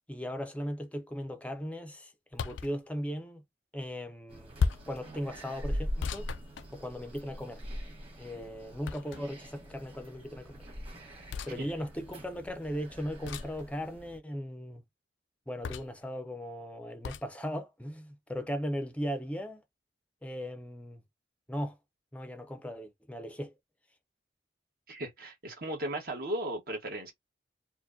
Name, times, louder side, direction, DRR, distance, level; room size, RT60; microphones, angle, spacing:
voice 1, 0.1-3.4 3.7-4.5 4.9-6.3 6.7-7.6 8.2-10.7 11.4-14.8 15.5-19.6 20.2-21.0 21.5-21.8 22.1-23.5, equal, 5° left, 0.6 m, -38 dB
sound 1, 2.3-2.7 4.6-5.0 6.0-7.2 8.8-9.4 11.3-11.6 13.2-13.6 15.6-16.0 17.0-17.3, left 5 dB, 85° left, 0.4 m, -34 dB
sound 2, 4.3-14.2, equal, 30° right, 1.7 m, -42 dB
voice 2, 24.9-27.1, right 1 dB, 50° right, 1.3 m, -36 dB
4.3 x 2.2 x 2.6 m
head